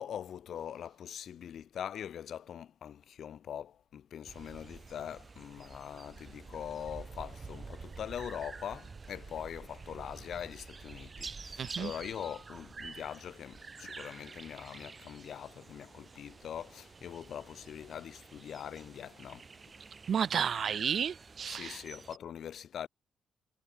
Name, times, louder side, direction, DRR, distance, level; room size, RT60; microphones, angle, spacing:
voice 1, 0.0-19.4 21.5-22.9, left 9 dB, 65° left, 0.4 m, -42 dB
sound 1, 4.3-22.2, right 4 dB, 35° right, 1.3 m, -49 dB
voice 2, 11.6-11.9 20.1-21.8, right 7 dB, 60° right, 0.4 m, -32 dB
supercardioid pair, 70°, 0 cm